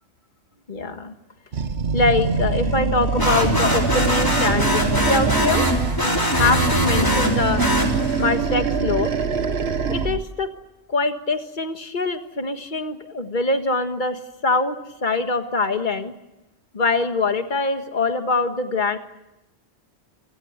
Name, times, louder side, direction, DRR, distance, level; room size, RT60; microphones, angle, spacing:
voice 1, 0.7-1.1 1.9-5.6 6.0-7.6 8.2-9.1 9.9-10.5 10.9-14.7 15.0-16.1 16.7-19.0, left 3 dB, 45° left, 7 dB, 1.8 m, -23 dB
Animal, 1.5-6.1 6.4-10.3, right 5 dB, 70° right, 1.5 m, -24 dB
sound 1, 3.2-8.4, equal, 20° left, 3.8 m, -22 dB
29.0 x 20.0 x 8.1 m, 0.97 s
omnidirectional pair, 1.1 m